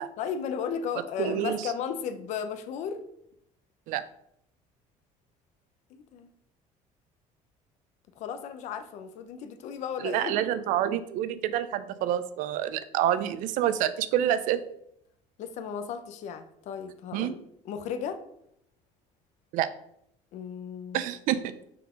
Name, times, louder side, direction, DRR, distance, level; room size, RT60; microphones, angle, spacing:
voice 1, 0.2-3.0 5.9-6.3 8.2-10.3 15.4-18.2 20.3-21.0, left 7 dB, 60° left, 8 dB, 0.8 m, -35 dB
voice 2, 1.2-1.7 3.9-4.0 10.0-14.6 17.1-17.4 19.5-19.7 20.9-21.6, right 11 dB, 70° right, 13 dB, 0.6 m, -27 dB
5.9 x 5.4 x 5.1 m, 0.74 s
cardioid pair, 170°, 14 cm